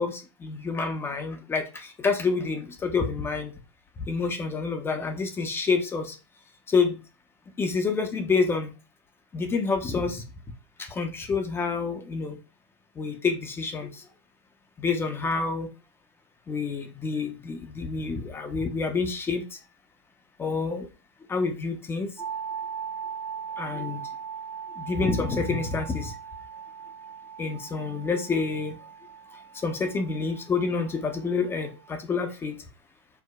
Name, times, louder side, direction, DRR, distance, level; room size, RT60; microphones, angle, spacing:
voice 1, 0.0-3.5 4.1-6.1 6.7-7.0 7.6-8.7 9.3-10.2 10.8-12.4 13.0-14.0 14.8-15.7 16.5-19.4 20.4-20.9 21.3-22.1 23.6-24.0 24.8-26.1 27.4-28.8 29.6-32.6, left 4 dB, 15° left, 6 dB, 0.5 m, -28 dB
sound 1, 22.2-31.9, right 7 dB, 90° right, 0.4 m, -39 dB
4.5 x 2.0 x 2.2 m, 0.31 s
hypercardioid pair, 105°, 15 cm